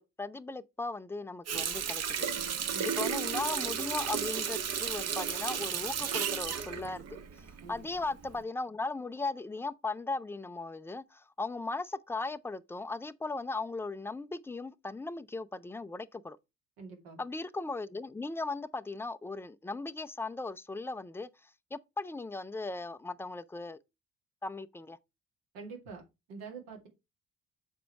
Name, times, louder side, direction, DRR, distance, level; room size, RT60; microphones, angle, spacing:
voice 1, 0.0-2.3 2.8-7.0 7.4-16.4 17.2-23.8 24.4-25.0, left 3 dB, 5° left, 0.5 m, -37 dB
Water tap faucet, 1.5-7.8 8.2-8.4, right 7 dB, 40° right, 1.1 m, -33 dB
voice 2, 16.8-17.2 25.5-26.0 26.3-26.9, right 5 dB, 65° right, 2.2 m, -45 dB
6.8 x 5.0 x 4.5 m
figure-of-eight pair, 50°, 38 cm